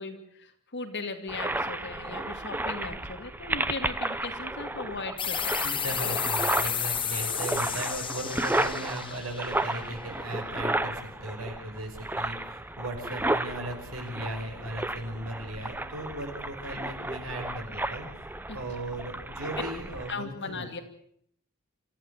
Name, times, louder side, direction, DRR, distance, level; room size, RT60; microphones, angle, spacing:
voice 1, 0.0-5.5 18.5-18.6 20.1-20.8, left 3 dB, 55° left, 6 dB, 2.7 m, -38 dB
sound 1, 1.3-20.1, right 1 dB, 10° right, 0.8 m, -33 dB
sound 2, 5.2-10.5, left 8 dB, 25° left, 1.2 m, -32 dB
voice 2, 5.6-20.6, right 1 dB, 75° right, 4 dB, 5.5 m, -37 dB
26.5 x 14.0 x 8.3 m, 0.68 s
head